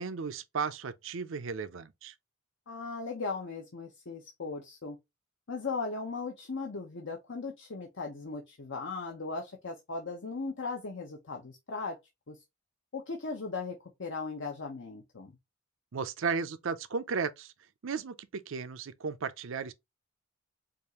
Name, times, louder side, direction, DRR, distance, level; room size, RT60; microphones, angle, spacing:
voice 1, 0.0-2.1 15.9-17.5 17.8-19.7, right 5 dB, 70° right, 0.5 m, -35 dB
voice 2, 2.7-5.0 5.5-12.0 12.3-12.4 12.9-15.3, left 4 dB, 65° left, 0.8 m, -38 dB
5.1 x 2.5 x 3.0 m
head